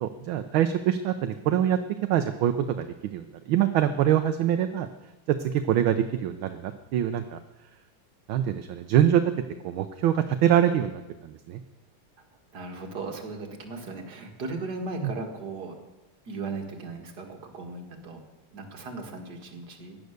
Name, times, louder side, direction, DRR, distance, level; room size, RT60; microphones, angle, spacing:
voice 1, 0.0-4.9 5.3-7.4 8.3-9.3 9.6-11.6 15.0-15.1, right 10 dB, 75° right, 8 dB, 1.5 m, -25 dB
voice 2, 12.5-15.7 16.3-18.2 18.5-20.0, right 3 dB, 50° right, 2 dB, 2.4 m, -37 dB
16.0 x 10.5 x 6.6 m, 1.1 s
omnidirectional pair, 2.3 m